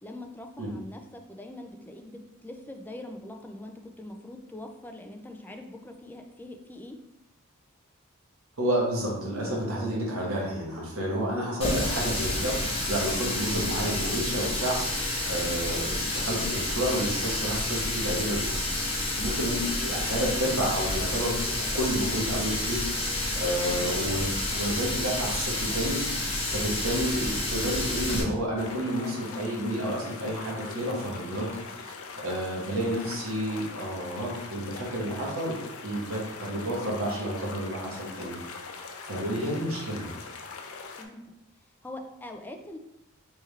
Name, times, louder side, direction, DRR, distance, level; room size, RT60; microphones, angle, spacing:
voice 1, 0.0-7.0 41.0-41.2 41.8-42.8, left 1 dB, 10° left, 4 dB, 0.4 m, -43 dB
voice 2, 8.6-12.6 12.9-18.5 19.2-31.5 31.9-35.6 35.8-38.4 39.0-40.1, equal, 85° right, -3 dB, 1.2 m, -30 dB
Water tap faucet, 11.6-28.2, left 2 dB, 30° left, 0.9 m, -29 dB
sound 1, 28.6-41.1, left 4 dB, 90° left, 0.5 m, -42 dB
3.4 x 3.3 x 3.3 m, 0.86 s
head